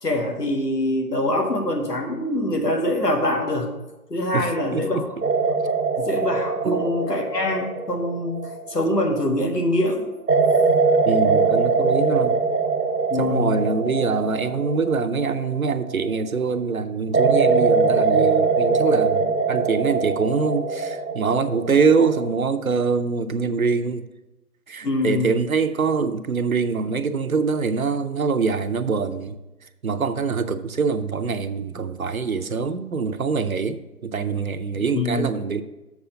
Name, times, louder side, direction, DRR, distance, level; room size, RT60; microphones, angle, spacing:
voice 1, 0.0-3.7 4.1-5.1 6.0-10.1 13.1-13.6 24.8-25.3 34.9-35.3, left 1 dB, 90° left, 3 dB, 1.7 m, -24 dB
voice 2, 4.3-5.0 6.6-6.9 11.0-12.4 13.2-24.0 24.7-29.4 29.8-35.6, right 5 dB, 65° right, 10 dB, 0.6 m, -24 dB
sound 1, 5.2-9.4 10.3-16.3 17.1-22.5, right 4 dB, 85° right, 1.1 m, -22 dB
7.1 x 4.7 x 6.6 m, 1.0 s
figure-of-eight pair, 165°, 47 cm